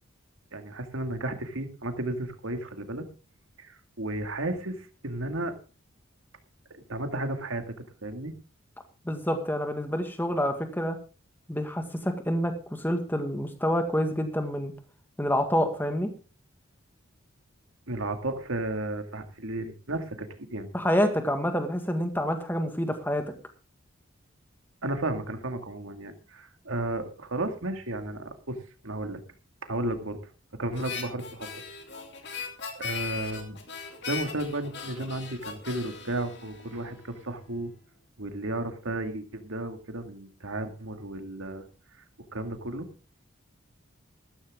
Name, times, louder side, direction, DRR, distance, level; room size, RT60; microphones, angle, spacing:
voice 1, 0.5-3.0 3.6-5.5 6.7-7.7 8.0-8.3 17.9-20.7 24.8-28.6 28.8-29.2 29.6-30.2 30.5-31.5 32.8-33.6 34.0-37.7 38.2-41.6 42.3-42.9, right 2 dB, 80° right, 7 dB, 2.1 m, -33 dB
voice 2, 9.1-11.0 11.5-14.7 15.2-16.1 20.7-23.2, equal, 10° left, 6 dB, 1.8 m, -27 dB
Harmonica, 30.7-37.2, left 6 dB, 55° left, 2.7 m, -39 dB
14.0 x 13.5 x 3.7 m, 0.35 s
head